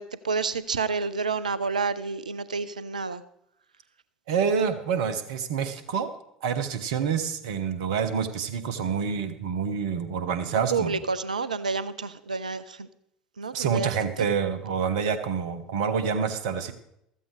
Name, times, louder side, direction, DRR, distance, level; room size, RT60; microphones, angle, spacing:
voice 1, 0.0-3.2 10.7-12.9 13.4-14.3, right 4 dB, 80° right, 16 dB, 0.5 m, -29 dB
voice 2, 4.3-6.1 6.4-11.0 13.5-16.7, right 6 dB, 65° right, 11 dB, 1.2 m, -27 dB
14.5 x 14.0 x 3.3 m, 0.76 s
figure-of-eight pair, 65°, 4 cm